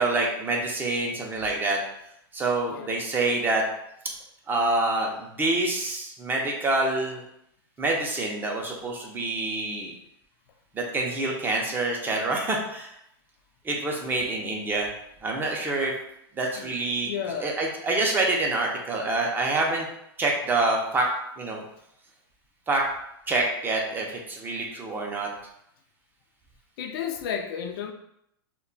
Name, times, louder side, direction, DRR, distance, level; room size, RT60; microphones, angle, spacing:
voice 1, 0.0-1.8 2.3-3.6 4.5-7.2 7.8-9.9 10.7-12.9 13.6-14.9 15.2-15.9 16.4-17.1 17.4-19.9 20.2-21.1 21.4-21.6 22.7-22.8 23.3-25.3, right 2 dB, 15° right, -1 dB, 0.5 m, -26 dB
voice 2, 17.0-17.6 25.0-25.1 26.8-27.9, left 8 dB, 65° left, 5 dB, 0.4 m, -32 dB
2.2 x 2.1 x 3.8 m, 0.77 s
supercardioid pair, 135°, 13 cm